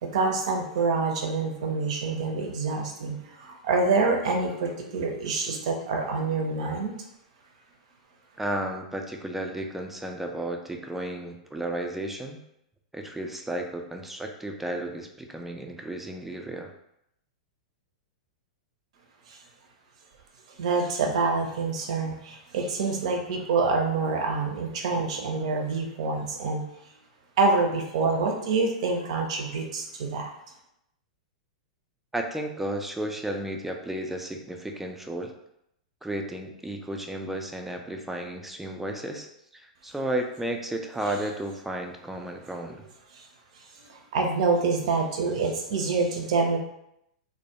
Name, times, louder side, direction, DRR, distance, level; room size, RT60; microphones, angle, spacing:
voice 1, 0.0-6.9 19.3-19.4 20.6-26.6 27.4-30.3 43.1-43.2 43.9-46.6, right 4 dB, 60° right, 2 dB, 0.5 m, -26 dB
voice 2, 8.4-12.4 12.9-16.7 32.1-35.3 36.0-39.3 39.5-42.8, right 1 dB, 5° right, 3 dB, 0.3 m, -33 dB
2.2 x 2.1 x 2.8 m, 0.79 s
hypercardioid pair, 105°, 4 cm